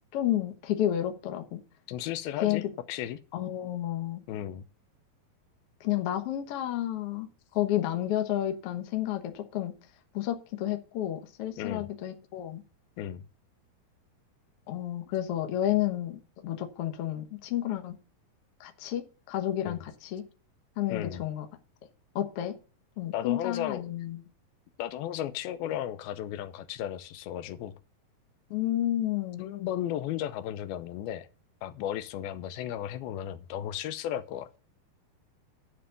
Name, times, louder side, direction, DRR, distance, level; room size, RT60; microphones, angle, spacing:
voice 1, 0.1-1.6 2.4-2.6 3.3-4.2 5.8-7.3 7.5-9.7 10.1-12.6 14.7-17.9 18.6-20.2 20.8-21.4 22.1-22.5 23.0-24.2 28.5-29.5, left 12 dB, 65° left, 1.5 m, -31 dB
voice 2, 1.9-3.2 4.3-4.6 11.6-11.9 13.0-13.3 19.7-19.8 20.9-21.2 23.1-23.8 24.8-27.7 29.4-31.3 31.6-34.6, left 11 dB, 90° left, 2.6 m, -34 dB
11.5 x 5.2 x 7.0 m
omnidirectional pair, 4.3 m